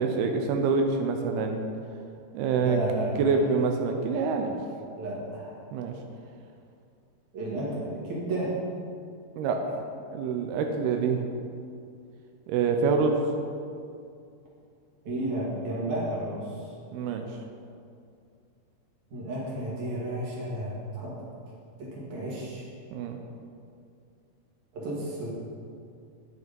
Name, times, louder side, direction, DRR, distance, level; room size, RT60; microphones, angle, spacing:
voice 1, 0.0-1.7 2.3-2.8 3.2-4.5 5.7-5.9 9.4-9.6 10.1-11.2 12.5-13.2 16.9-17.3 22.9-23.2, right 5 dB, 90° right, 4 dB, 2.7 m, -26 dB
voice 2, 2.6-3.1 4.4-4.6 5.0-5.6 7.3-8.6 15.1-16.7 19.1-21.1 21.8-22.7 24.7-25.3, right 1 dB, 55° right, -6 dB, 3.5 m, -32 dB
9.2 x 8.4 x 5.2 m, 2.4 s
omnidirectional pair, 4.3 m